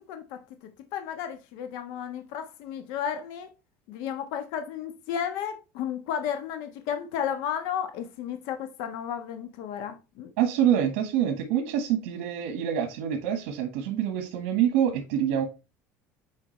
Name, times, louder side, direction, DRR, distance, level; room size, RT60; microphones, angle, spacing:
voice 1, 0.1-0.4 0.9-3.5 3.9-10.3, left 8 dB, 70° left, 1.3 m, -33 dB
voice 2, 10.4-15.4, right 9 dB, 85° right, 1.4 m, -26 dB
8.4 x 4.7 x 3.2 m
cardioid pair, 150°, 6 cm